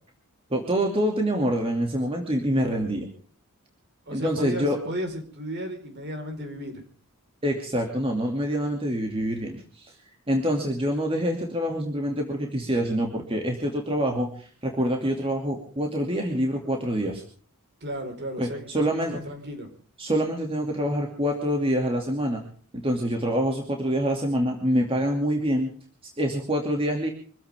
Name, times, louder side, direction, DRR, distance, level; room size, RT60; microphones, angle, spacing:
voice 1, 0.5-3.1 4.1-4.8 7.4-9.9 10.3-17.2 18.4-19.2 20.0-22.4 22.7-25.7 26.2-27.1, equal, 25° right, 2 dB, 2.7 m, -26 dB
voice 2, 4.1-6.8 17.8-19.7, equal, 50° right, 5 dB, 4.8 m, -34 dB
25.5 x 15.0 x 3.7 m, 0.43 s
head